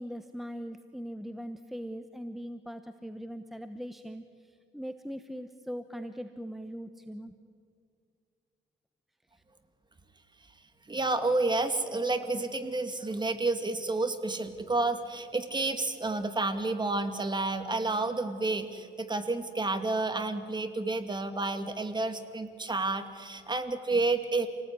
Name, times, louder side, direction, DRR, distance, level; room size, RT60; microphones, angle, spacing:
voice 1, 0.0-7.4, equal, ahead, 8 dB, 1.1 m, -40 dB
voice 2, 10.9-24.5, right 2 dB, 20° right, 8 dB, 2.3 m, -30 dB
28.0 x 18.0 x 9.8 m, 2.2 s
cardioid pair, 90°, 20 cm